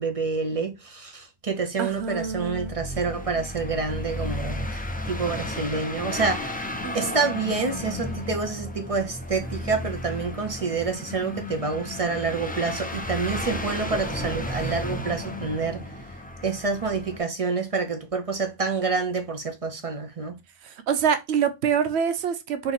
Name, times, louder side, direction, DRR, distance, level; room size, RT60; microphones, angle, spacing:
voice 1, 0.0-15.8 16.4-20.3, right 4 dB, 35° right, 0.7 m, -28 dB
voice 2, 1.8-2.7 6.8-7.3 20.6-22.7, right 7 dB, 90° right, 0.9 m, -26 dB
sound 1, 2.0-17.2, left 1 dB, 15° left, 0.3 m, -33 dB
4.0 x 3.0 x 4.0 m
omnidirectional pair, 1.1 m